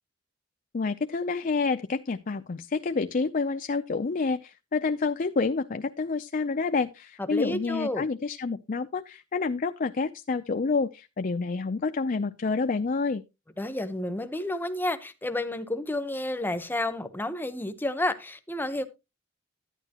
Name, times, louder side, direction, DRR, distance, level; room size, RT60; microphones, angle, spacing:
voice 1, 0.7-13.2, left 4 dB, 40° left, 0.5 m, -28 dB
voice 2, 7.2-8.1 13.6-18.9, left 1 dB, 10° left, 0.8 m, -30 dB
11.0 x 9.7 x 2.9 m
head